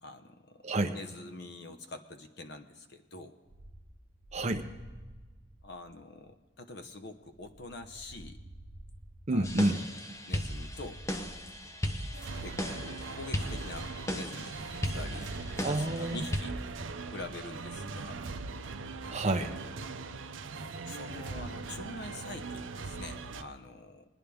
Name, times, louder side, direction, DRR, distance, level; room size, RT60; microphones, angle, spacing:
voice 1, 0.0-3.4 5.6-8.4 9.3-9.5 10.3-11.0 12.4-14.6 14.8-16.6 17.1-18.2 20.9-24.0, left 2 dB, 55° left, 8 dB, 0.9 m, -45 dB
sound 1, 3.4-18.4, right 1 dB, 35° left, 1.8 m, -52 dB
voice 2, 4.3-4.6 9.3-9.8 15.6-16.2 19.1-19.5, right 2 dB, 35° right, 5 dB, 0.8 m, -29 dB
sound 2, 9.4-16.4, left 1 dB, 15° left, 0.7 m, -37 dB
Epic Orchestra, 12.1-23.4, right 4 dB, 75° right, 0.6 m, -41 dB
21.0 x 10.0 x 3.5 m, 1.3 s
head